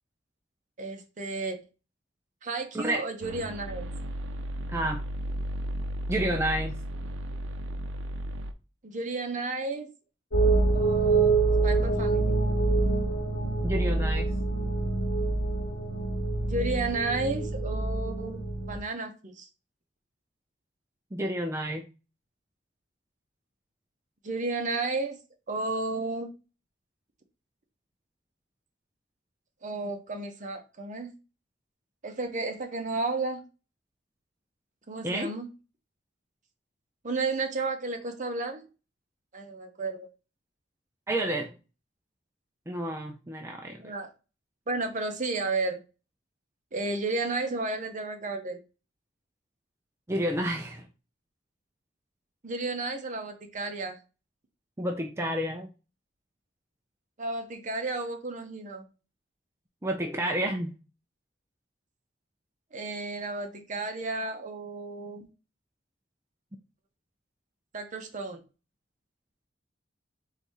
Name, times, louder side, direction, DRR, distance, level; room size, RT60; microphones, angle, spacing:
voice 1, 0.8-1.6 2.4-3.9 8.8-9.9 10.7-11.4 11.6-12.4 16.5-19.5 24.2-25.2 25.5-26.3 29.6-31.1 32.0-33.4 34.9-35.5 37.0-38.7 39.3-40.1 43.8-44.1 44.7-45.8 46.7-48.6 52.4-54.0 57.2-58.8 62.7-65.3 67.7-68.4, right 3 dB, 40° right, 5 dB, 0.8 m, -32 dB
sound 1, 3.2-8.5, equal, 90° right, 0.5 m, -34 dB
voice 2, 4.7-5.0 6.1-6.8 13.6-14.3 21.1-21.8 35.0-35.3 41.1-41.5 42.7-43.9 50.1-50.9 54.8-55.7 59.8-60.7, right 1 dB, 15° right, 2 dB, 0.5 m, -30 dB
sound 2, 10.3-18.8, right 3 dB, 70° left, 1.1 m, -26 dB
4.0 x 2.7 x 4.6 m, 0.31 s
head